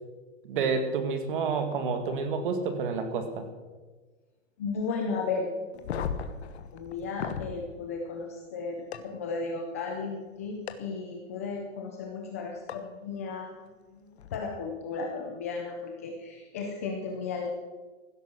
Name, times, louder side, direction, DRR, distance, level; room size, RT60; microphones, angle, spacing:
voice 1, 0.4-3.5, right 5 dB, 40° right, 8 dB, 2.1 m, -29 dB
voice 2, 4.6-5.9 6.7-13.5 13.9-17.5, left 4 dB, 10° left, 1 dB, 0.5 m, -35 dB
sound 1, 5.7-7.5 8.9-9.0 10.7-10.8 12.7-12.8 14.2-14.3, left 7 dB, 55° left, 1.4 m, -35 dB
16.0 x 12.5 x 6.2 m, 1.3 s
hypercardioid pair, 180°, 38 cm